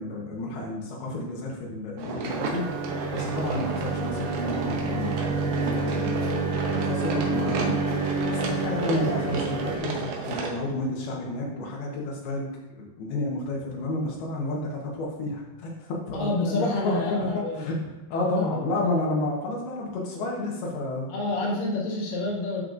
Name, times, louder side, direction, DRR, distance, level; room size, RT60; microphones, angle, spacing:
voice 1, 0.0-7.7 8.3-21.1, left 2 dB, 85° left, -3 dB, 3.2 m, -31 dB
sound 1, 2.0-10.6, right 3 dB, 65° right, 2.1 m, -32 dB
sound 2, 2.3-9.8, right 4 dB, 80° right, 3.2 m, -29 dB
voice 2, 16.1-17.7 18.2-18.6 21.1-22.6, left 2 dB, 65° left, -4 dB, 3.3 m, -28 dB
11.5 x 6.5 x 2.6 m, 1.1 s
omnidirectional pair, 4.4 m